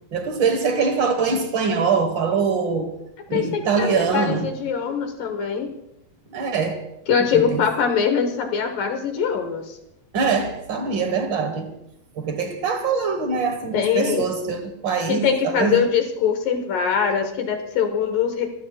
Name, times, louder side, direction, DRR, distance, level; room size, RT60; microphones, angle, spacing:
voice 1, 0.1-2.9 3.3-4.5 6.3-6.8 7.3-7.7 10.1-11.7 12.2-15.8, right 5 dB, 85° right, 1.0 m, -23 dB
voice 2, 3.3-5.7 7.1-9.8 13.7-14.3 15.1-18.5, left 7 dB, 70° left, 2.8 m, -22 dB
29.0 x 16.0 x 2.4 m
omnidirectional pair, 4.3 m